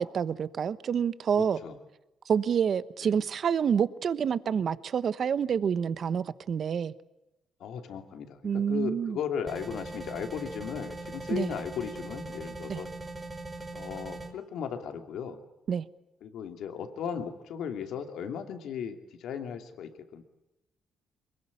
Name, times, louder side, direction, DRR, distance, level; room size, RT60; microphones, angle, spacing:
voice 1, 0.0-1.6 2.3-6.9 8.4-9.2 11.3-11.5 12.7-12.8 15.7-15.8, right 7 dB, 55° right, 1.1 m, -28 dB
voice 2, 1.3-1.8 3.0-3.2 7.6-12.9 13.7-15.4 16.2-20.2, left 7 dB, 80° left, 2.7 m, -36 dB
sound 1, 9.5-14.3, right 2 dB, 20° right, 5.2 m, -40 dB
23.5 x 21.0 x 9.8 m
cardioid pair, 90°, 0 cm